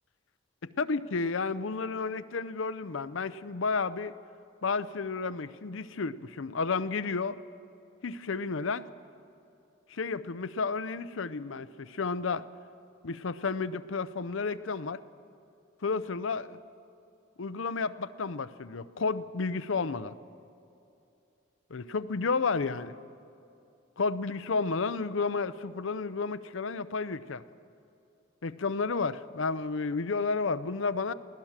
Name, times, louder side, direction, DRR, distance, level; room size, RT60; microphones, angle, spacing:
voice 1, 0.6-4.1 4.6-7.4 8.0-8.9 9.9-12.4 13.0-15.0 15.8-16.6 17.4-20.1 21.7-22.9 24.0-27.4 28.4-31.1, left 4 dB, 75° left, 14 dB, 0.6 m, -31 dB
23.0 x 16.0 x 7.4 m, 2.7 s
head